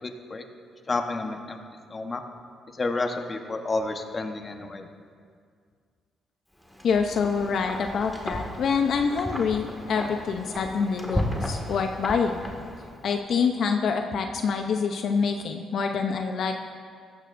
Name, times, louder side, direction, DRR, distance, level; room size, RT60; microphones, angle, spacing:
voice 1, 0.0-0.4 0.9-1.6 1.9-2.2 2.7-4.9, left 3 dB, 30° left, 5 dB, 1.1 m, -30 dB
Wind, 6.6-13.1, equal, 5° left, 2.0 m, -34 dB
voice 2, 6.8-12.4 13.0-16.6, left 5 dB, 65° left, 4 dB, 0.7 m, -26 dB
16.0 x 14.5 x 2.6 m, 2.1 s
cardioid pair, 90°, 0 cm